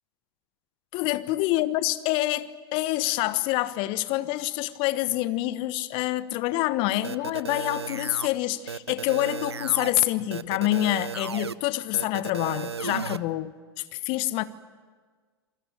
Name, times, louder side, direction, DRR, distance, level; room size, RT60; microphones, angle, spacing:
voice 1, 0.9-13.5 13.9-14.4, left 16 dB, 40° left, 1.3 m, -26 dB
sound 1, 7.0-8.3 8.7-9.9 10.3-11.5 11.9-13.2, right 6 dB, 80° right, 0.8 m, -34 dB
27.5 x 22.0 x 8.9 m
figure-of-eight pair, 100°, 14 cm